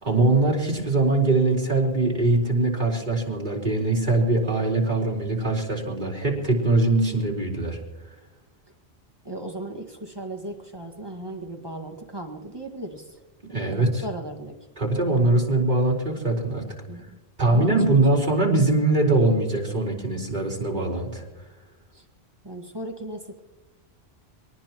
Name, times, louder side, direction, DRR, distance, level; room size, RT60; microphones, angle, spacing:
voice 1, 0.0-7.8 13.5-14.0 14.8-16.6 17.4-21.2, right 2 dB, 45° right, -2 dB, 4.3 m, -22 dB
voice 2, 9.2-13.2 13.5-14.6 16.9-17.0 17.4-18.0 21.9-22.1 22.4-23.4, right 1 dB, 25° right, 1 dB, 1.8 m, -36 dB
24.5 x 19.0 x 3.0 m, 1.1 s
omnidirectional pair, 1.1 m